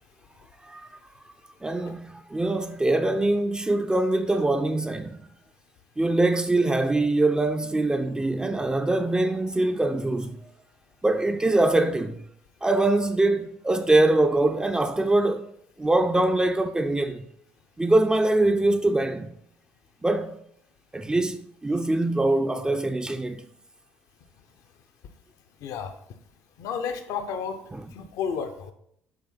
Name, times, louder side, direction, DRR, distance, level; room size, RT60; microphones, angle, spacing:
voice 1, 1.6-5.2 6.0-10.4 11.0-12.2 12.6-15.5 15.8-17.2 17.8-19.3 20.0-20.4 20.9-23.5, right 2 dB, 10° right, 0.6 m, -23 dB
voice 2, 25.6-25.9 26.6-27.6 27.9-28.7, left 6 dB, 60° left, 0.8 m, -31 dB
7.9 x 3.4 x 5.6 m
figure-of-eight pair, 55°, 6 cm